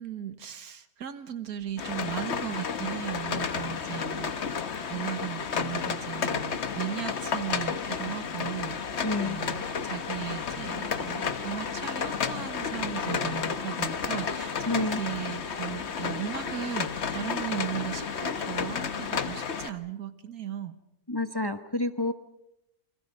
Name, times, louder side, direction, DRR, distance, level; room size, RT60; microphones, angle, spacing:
voice 1, 0.0-4.6 4.9-20.7, right 10 dB, 90° right, 10 dB, 1.8 m, -37 dB
sound 1, 1.8-19.7, left 6 dB, 50° left, 1.3 m, -32 dB
voice 2, 9.0-9.4 14.7-15.0 21.1-22.1, left 2 dB, 20° left, 8 dB, 1.1 m, -29 dB
28.0 x 26.0 x 5.4 m, 0.84 s
omnidirectional pair, 1.5 m